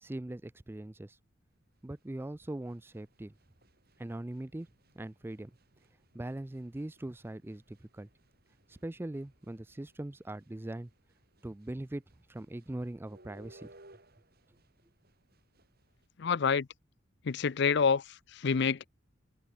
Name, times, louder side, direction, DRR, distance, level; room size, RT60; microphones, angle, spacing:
voice 1, 0.0-1.2 1.8-3.3 4.0-4.7 4.9-5.5 6.1-8.1 8.7-10.9 11.4-12.0 12.3-13.7, right 1 dB, 10° right, 0.4 m, -41 dB
sound 1, 1.5-16.1, right 1 dB, 50° right, 8.0 m, -63 dB
voice 2, 16.2-16.7 17.2-18.0 18.3-18.9, left 6 dB, 60° left, 0.5 m, -27 dB
head